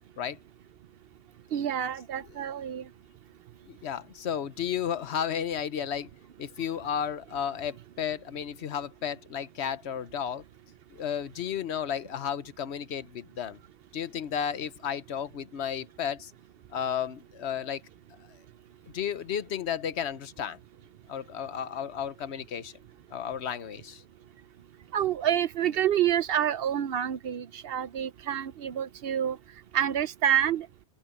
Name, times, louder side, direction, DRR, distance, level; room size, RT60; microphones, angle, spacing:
voice 1, 1.5-2.9 24.9-29.4 29.7-30.7, right 10 dB, 65° right, 0.7 m, -28 dB
voice 2, 3.7-6.1 6.4-10.4 10.9-13.6 13.9-16.3 16.7-17.8 18.9-20.6 21.1-22.7 23.1-24.0, left 8 dB, 70° left, 1.1 m, -33 dB
open air
omnidirectional pair, 1.2 m